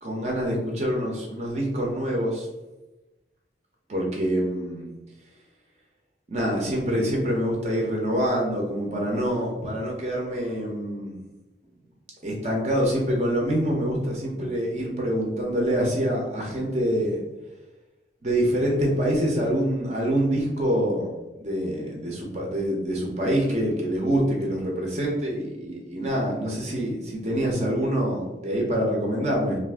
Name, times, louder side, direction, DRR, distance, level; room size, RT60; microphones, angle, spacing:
voice 1, 0.0-2.5 3.9-4.9 6.3-11.2 12.2-17.2 18.2-21.1 21.4-29.6, equal, 40° right, -1 dB, 0.6 m, -25 dB
2.5 x 2.5 x 3.5 m, 1.0 s
head